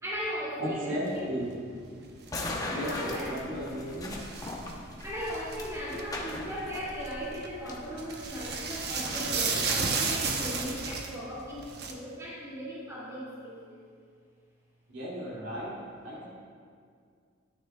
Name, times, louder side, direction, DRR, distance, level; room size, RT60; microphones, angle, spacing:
voice 1, 0.0-1.3 2.7-3.3 4.3-4.4 5.0-13.9, equal, 15° right, -8 dB, 2.6 m, -38 dB
voice 2, 0.6-1.5 2.7-4.2 14.9-16.3, equal, 75° right, -7 dB, 2.6 m, -35 dB
sound 1, 1.1-6.0 6.6-7.6 7.9-11.9, right 4 dB, 55° right, 0.9 m, -33 dB
sound 2, 2.3-11.0, left 1 dB, 20° left, 0.9 m, -40 dB
13.0 x 9.5 x 2.4 m, 2.1 s
head